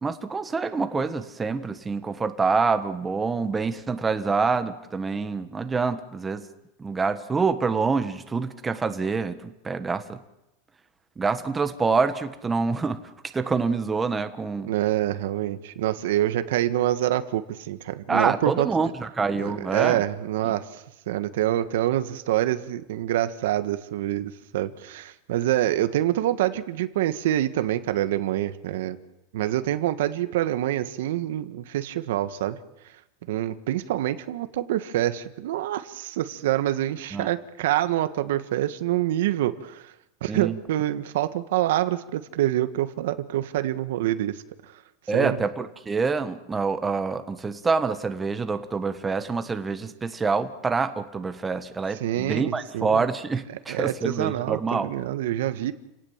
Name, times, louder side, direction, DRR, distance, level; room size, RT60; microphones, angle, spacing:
voice 1, 0.0-6.4 6.8-10.2 11.2-13.0 13.3-14.7 18.1-20.0 20.5-20.6 37.1-37.3 40.3-40.6 45.1-54.9, right 4 dB, 15° right, 8 dB, 1.4 m, -26 dB
voice 2, 14.6-18.7 19.4-29.0 29.3-32.6 33.3-39.9 40.2-44.4 45.1-45.4 52.0-53.0 53.7-55.7, right 13 dB, 80° right, 11 dB, 1.6 m, -26 dB
29.5 x 18.0 x 7.4 m, 0.90 s
supercardioid pair, 150°, 0 cm